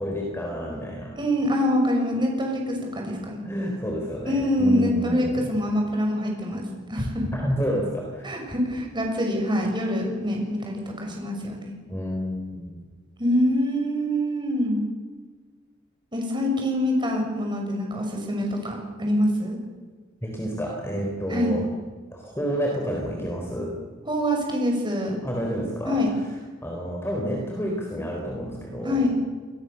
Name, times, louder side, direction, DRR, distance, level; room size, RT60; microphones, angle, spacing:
voice 1, 0.0-1.2 3.4-5.5 7.3-8.4 11.9-12.8 20.2-21.7 22.1-23.8 25.2-26.2 26.6-29.1, equal, 15° left, 0 dB, 3.8 m, -29 dB
voice 2, 1.2-3.4 4.3-6.6 6.9-7.3 8.2-11.7 13.2-14.8 16.1-19.6 21.3-21.6 24.1-25.2 25.8-26.1 28.8-29.2, equal, 25° right, 1 dB, 6.6 m, -25 dB
28.0 x 21.5 x 7.0 m, 1.5 s
head